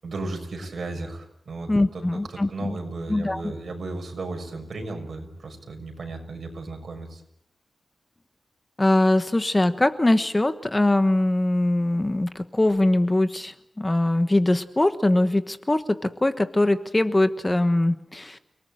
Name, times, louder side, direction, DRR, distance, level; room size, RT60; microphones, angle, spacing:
voice 1, 0.0-2.0 2.3-7.2, right 2 dB, 60° right, 4 dB, 6.4 m, -35 dB
voice 2, 1.7-2.8 3.1-3.5 8.8-18.4, left 1 dB, 20° left, 10 dB, 1.2 m, -22 dB
29.5 x 19.5 x 9.1 m, 0.77 s
wide cardioid pair, 120°, 0 cm